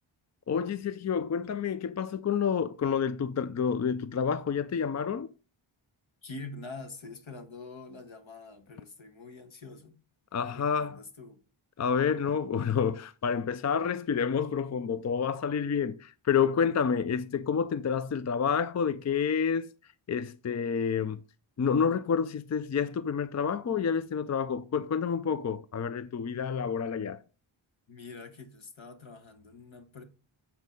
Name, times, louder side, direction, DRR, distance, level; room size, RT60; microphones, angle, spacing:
voice 1, 0.5-5.3 10.3-11.0 11.8-21.2 21.6-27.2, left 6 dB, 35° left, 0.4 m, -29 dB
voice 2, 6.2-10.0 10.4-11.4 27.9-30.0, left 3 dB, 65° left, 1.6 m, -45 dB
8.1 x 4.5 x 5.3 m
cardioid pair, 55°, 50 cm